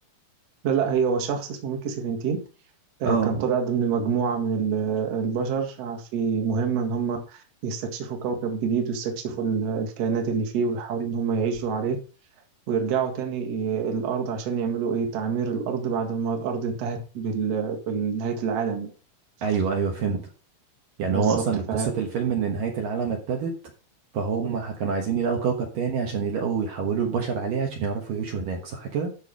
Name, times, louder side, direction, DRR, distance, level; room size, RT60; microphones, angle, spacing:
voice 1, 0.6-2.4 3.0-12.0 12.7-18.9 21.1-21.3 21.7-21.9, right 6 dB, 50° right, 3 dB, 2.4 m, -26 dB
voice 2, 3.0-3.5 19.4-20.2 21.0-23.5 24.1-29.1, right 6 dB, 65° right, 1 dB, 2.7 m, -26 dB
13.0 x 4.8 x 5.2 m, 0.36 s
omnidirectional pair, 4.7 m